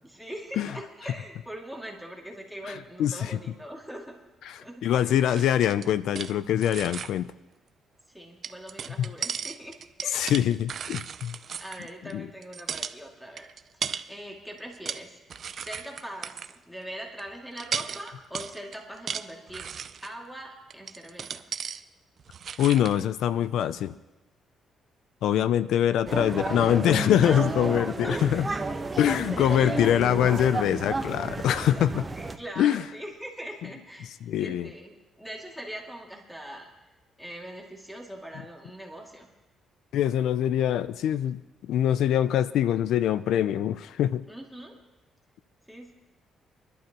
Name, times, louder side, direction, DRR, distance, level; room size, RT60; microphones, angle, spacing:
voice 1, 0.0-4.2 4.6-5.3 8.1-10.3 11.6-15.2 15.6-19.7 20.0-21.4 27.2-27.4 28.0-28.2 29.4-29.8 32.1-34.1 34.4-36.7 37.2-39.3 44.3-44.8 45.7-45.9, right 1 dB, ahead, 0 dB, 2.4 m, -41 dB
voice 2, 3.0-3.4 4.5-7.3 10.1-11.4 12.1-12.3 22.6-23.9 25.2-28.5 29.0-32.1 32.6-32.8 34.2-34.7 39.9-44.3, left 10 dB, 80° left, 15 dB, 0.4 m, -24 dB
sound 1, 5.3-6.4 6.6-7.1 8.4-12.1 12.4-13.0 13.4-14.1 14.6-15.0 15.3-16.6 17.2-17.3 17.6-20.1 20.7-21.8 22.2-23.0, right 7 dB, 55° right, 0.6 m, -36 dB
sound 2, 26.1-32.4, right 3 dB, 20° right, 1.1 m, -32 dB
25.0 x 11.5 x 3.0 m, 1.1 s
cardioid pair, 90°, 0 cm